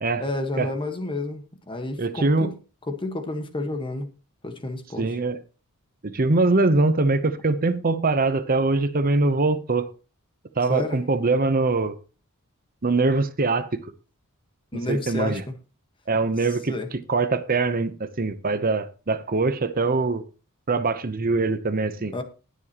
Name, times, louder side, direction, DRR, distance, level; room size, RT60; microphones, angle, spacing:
voice 1, 0.2-2.5 2.9-4.1 4.4-5.2 10.7-11.0 14.7-15.5 16.7-16.9 22.0-22.2, left 2 dB, 25° left, 1.4 m, -30 dB
voice 2, 2.0-2.5 5.0-5.4 6.0-9.9 10.6-12.0 12.8-13.8 14.9-15.4 16.1-16.7 17.1-20.2 20.7-22.1, right 3 dB, 40° right, 0.8 m, -22 dB
20.0 x 7.2 x 3.0 m
head